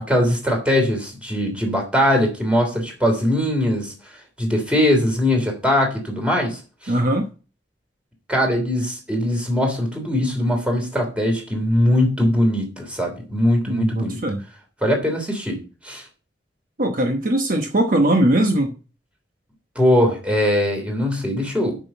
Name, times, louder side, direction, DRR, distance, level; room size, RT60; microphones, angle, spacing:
voice 1, 0.0-3.9 4.4-6.9 8.3-14.2 14.8-15.6 15.8-16.0 19.7-21.8, left 1 dB, 5° right, 3.1 m, -21 dB
voice 2, 6.9-7.3 13.7-14.4 16.8-18.7, right 1 dB, 50° right, 1.1 m, -20 dB
7.5 x 6.4 x 6.9 m
head